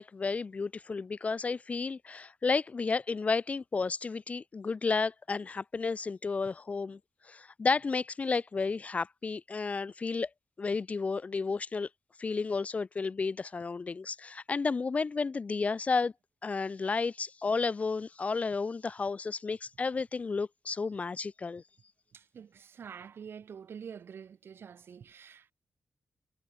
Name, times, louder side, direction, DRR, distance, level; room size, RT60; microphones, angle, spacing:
voice 1, 0.0-7.0 7.3-10.3 10.6-11.9 12.2-16.1 16.4-21.6, left 4 dB, 35° left, 0.3 m, -32 dB
voice 2, 22.1-25.5, right 7 dB, 65° right, 0.9 m, -47 dB
wide cardioid pair, 125°, 4 cm